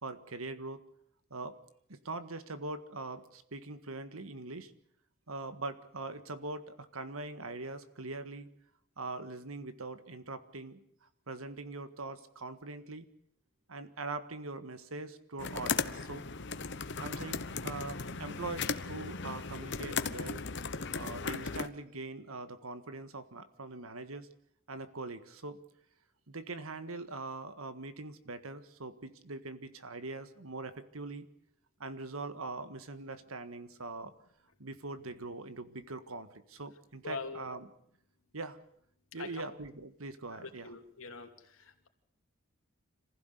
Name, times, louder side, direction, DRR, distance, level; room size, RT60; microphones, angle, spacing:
voice 1, 0.0-0.8 1.3-1.6 1.9-4.7 5.3-8.5 9.0-10.8 11.3-13.1 13.7-16.2 17.0-20.4 20.9-24.3 24.7-25.6 26.3-31.3 31.8-34.1 34.6-37.7 38.3-38.6 39.1-40.7, right 3 dB, 85° right, 10 dB, 1.6 m, -42 dB
sound 1, 15.4-21.7, left 5 dB, 55° left, 1.1 m, -37 dB
voice 2, 37.0-37.4 39.2-39.4 40.3-41.3 41.6-41.9, left 4 dB, 80° left, 4 dB, 2.9 m, -43 dB
26.5 x 15.5 x 8.2 m, 0.72 s
head